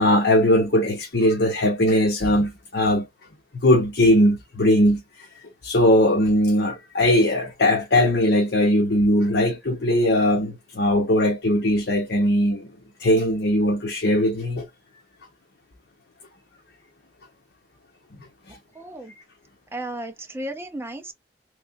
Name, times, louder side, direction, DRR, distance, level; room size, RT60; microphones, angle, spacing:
voice 1, 0.0-3.1 3.5-5.0 5.6-12.7 13.0-14.6 18.5-18.6, left 1 dB, 75° left, 0.9 m, -20 dB
voice 2, 18.8-19.1 19.7-21.1, right 1 dB, 15° right, 0.6 m, -34 dB
3.3 x 3.2 x 2.5 m
head